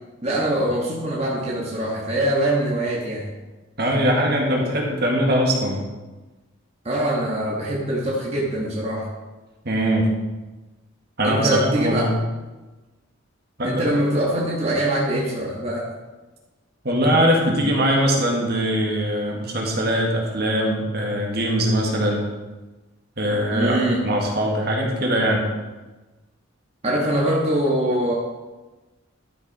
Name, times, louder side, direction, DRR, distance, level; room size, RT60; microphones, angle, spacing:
voice 1, 0.2-3.3 6.8-9.1 11.2-12.1 13.6-15.9 23.5-24.0 26.8-28.1, right 1 dB, 30° right, -4 dB, 1.5 m, -23 dB
voice 2, 3.8-5.8 9.7-10.1 11.2-12.1 13.6-13.8 16.8-22.3 23.2-23.8 24.0-25.5, equal, 50° right, 0 dB, 1.8 m, -21 dB
12.0 x 6.6 x 4.1 m, 1.2 s
head